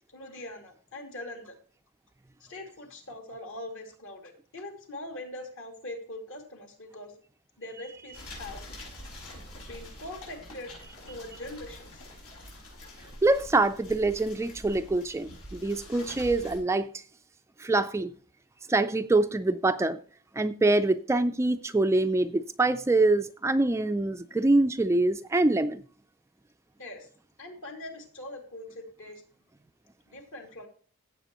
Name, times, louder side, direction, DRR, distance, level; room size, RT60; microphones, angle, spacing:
voice 1, 0.1-1.5 2.4-7.1 7.6-8.6 9.7-10.8 11.0-12.0 26.8-27.1 27.4-29.2 30.1-30.7, left 1 dB, 60° left, 2.6 m, -42 dB
sound 1, 8.1-16.6, left 1 dB, 90° left, 5.8 m, -45 dB
voice 2, 13.2-16.9 17.6-18.1 18.7-20.0 20.4-25.8, right 2 dB, 15° right, 0.3 m, -25 dB
16.0 x 7.8 x 3.0 m
head